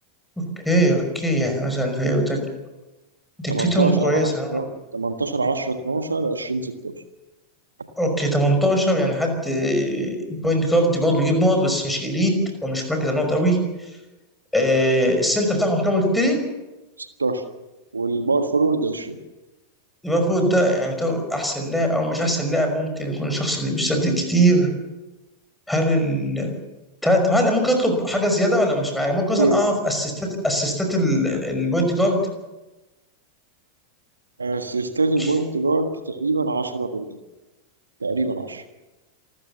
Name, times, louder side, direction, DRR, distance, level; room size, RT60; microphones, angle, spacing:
voice 1, 0.4-2.5 3.4-4.6 8.0-13.6 14.5-16.4 20.0-24.7 25.7-26.5 27.0-32.2 35.2-35.3, equal, 5° left, 4 dB, 5.6 m, -21 dB
voice 2, 3.5-4.6 4.9-6.9 17.0-17.4 17.9-19.2 29.4-29.7 34.4-37.0 38.0-38.6, right 3 dB, 75° right, 8 dB, 1.5 m, -24 dB
27.0 x 14.0 x 7.2 m, 1.1 s
figure-of-eight pair, 90°, 0 cm